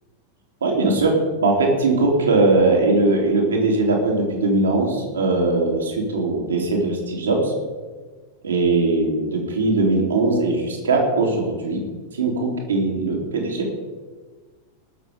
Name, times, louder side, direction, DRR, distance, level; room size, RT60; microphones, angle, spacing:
voice 1, 0.6-7.5 8.4-11.8 12.2-13.7, right 3 dB, 70° right, 0 dB, 3.1 m, -20 dB
19.0 x 7.1 x 5.2 m, 1.4 s
figure-of-eight pair, 90°, 0 cm